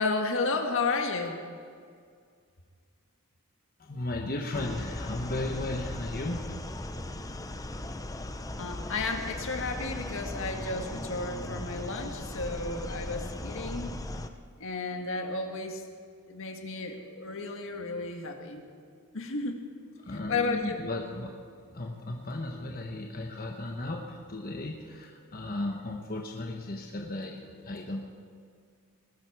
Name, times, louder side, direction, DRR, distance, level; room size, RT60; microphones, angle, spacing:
voice 1, 0.0-1.4 8.6-13.9 14.6-15.8 16.3-18.7 19.1-19.6 20.3-20.9, left 3 dB, 65° left, 4 dB, 1.6 m, -32 dB
voice 2, 3.8-6.6 20.0-21.3 21.7-28.0, left 2 dB, 40° left, 1 dB, 1.2 m, -35 dB
sound 1, 4.5-14.3, left 1 dB, 15° left, 0.7 m, -38 dB
21.0 x 12.5 x 4.8 m, 2.1 s
head